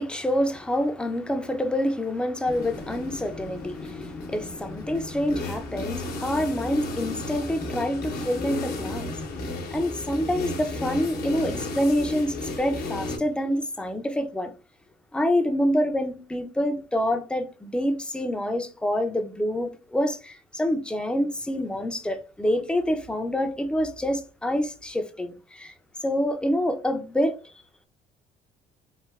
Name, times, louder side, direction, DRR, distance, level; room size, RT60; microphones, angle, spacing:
voice 1, 0.0-14.5 15.1-25.7 26.0-27.4, equal, 5° left, 0.4 m, -27 dB
sound 1, 2.5-13.2, left 2 dB, 65° left, 0.8 m, -34 dB
3.1 x 2.5 x 2.3 m
cardioid pair, 110°, 17 cm